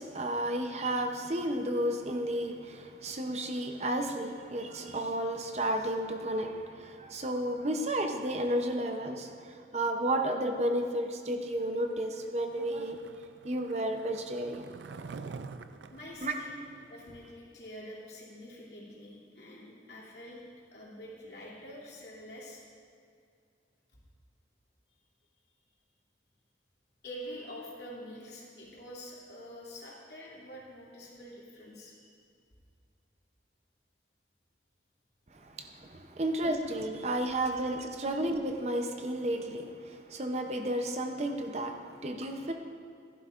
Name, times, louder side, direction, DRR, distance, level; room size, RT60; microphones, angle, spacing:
voice 1, 0.0-13.0 13.4-14.7 16.2-16.3 35.3-42.5, right 1 dB, 35° right, 4 dB, 0.6 m, -32 dB
Skateboard, 11.9-17.3, right 4 dB, 80° right, 0.4 m, -47 dB
voice 2, 15.9-16.6 16.9-20.4 20.7-22.6 27.0-32.1, equal, 65° left, -6 dB, 2.6 m, -46 dB
15.0 x 11.5 x 2.5 m, 2.3 s
head